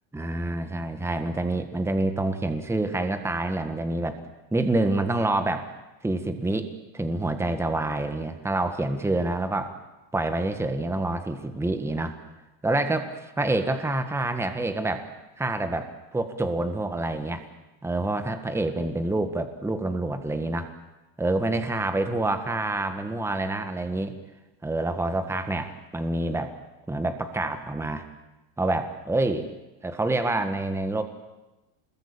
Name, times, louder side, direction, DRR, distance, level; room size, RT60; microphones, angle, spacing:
voice 1, 0.1-4.2 4.5-5.7 6.0-9.7 10.1-12.1 12.6-15.1 15.4-17.4 17.8-20.7 21.2-24.1 24.6-26.5 26.9-28.0 28.6-29.5 29.8-31.0, right 2 dB, 5° right, 8 dB, 1.6 m, -27 dB
26.0 x 21.5 x 8.8 m, 1.0 s
supercardioid pair, 140°, 49 cm